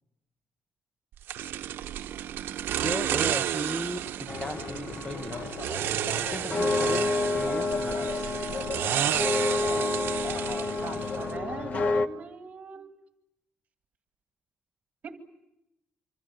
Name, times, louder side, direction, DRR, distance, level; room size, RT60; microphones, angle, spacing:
sound 1, 1.3-11.4, right 11 dB, 75° right, 1.0 m, -32 dB
voice 1, 2.8-5.5 6.2-8.6, left 1 dB, 10° left, 11 dB, 1.1 m, -37 dB
sound 2, 4.3-12.1, left 3 dB, 40° left, 1.1 m, -29 dB
voice 2, 10.8-12.9 15.0-15.2, right 6 dB, 40° right, 7 dB, 2.1 m, -41 dB
26.5 x 25.5 x 7.8 m, 0.84 s
cardioid pair, 175°, 4 cm